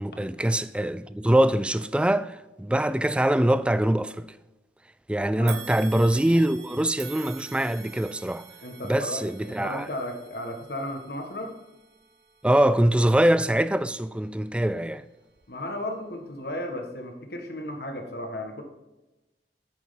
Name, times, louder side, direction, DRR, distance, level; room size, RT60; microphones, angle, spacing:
voice 1, 0.0-4.3 5.1-8.5 8.8-9.9 12.4-15.0, right 1 dB, 5° right, 0.3 m, -23 dB
sound 1, 5.5-14.8 15.3-15.5 16.4-16.5, right 10 dB, 65° right, 0.9 m, -47 dB
voice 2, 8.6-11.6 15.5-18.6, left 1 dB, 60° left, 1.7 m, -35 dB
9.0 x 6.5 x 5.3 m
head